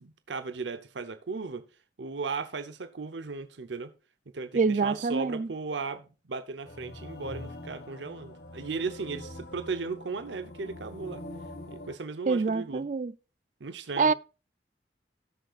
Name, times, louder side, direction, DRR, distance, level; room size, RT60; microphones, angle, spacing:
voice 1, 0.0-1.6 2.0-3.9 4.3-11.2 11.7-12.9 13.6-14.1, right 4 dB, 85° right, 0.8 m, -36 dB
voice 2, 4.5-5.5 12.3-13.1 14.0-14.1, right 4 dB, 45° right, 0.4 m, -26 dB
sound 1, 6.6-12.0, left 1 dB, 60° left, 1.5 m, -44 dB
18.0 x 6.5 x 2.4 m
head